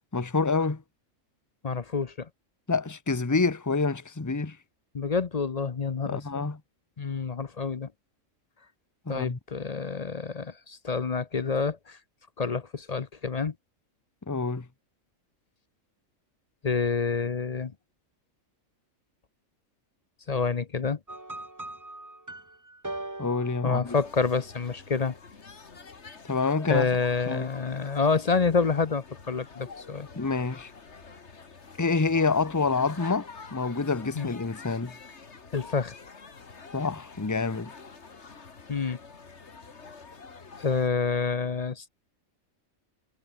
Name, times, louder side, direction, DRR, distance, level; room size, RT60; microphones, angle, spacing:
voice 1, 0.1-0.8 2.7-4.6 6.1-6.6 9.1-9.4 14.3-14.7 23.2-23.9 26.3-26.9 27.2-27.5 30.1-30.7 31.8-34.9 36.7-37.7, left 4 dB, 15° left, 1.0 m, -27 dB
voice 2, 1.6-2.3 4.9-6.4 7.0-7.9 9.1-12.0 12.4-13.5 16.6-17.7 20.3-21.0 23.6-25.1 26.7-30.1 34.2-34.3 35.5-35.9 38.7-39.0 40.6-41.9, left 5 dB, 35° left, 0.7 m, -28 dB
sound 1, 21.1-24.5, right 2 dB, 15° right, 1.4 m, -41 dB
sound 2, 23.8-40.9, left 4 dB, 55° left, 2.2 m, -47 dB
omnidirectional pair, 1.4 m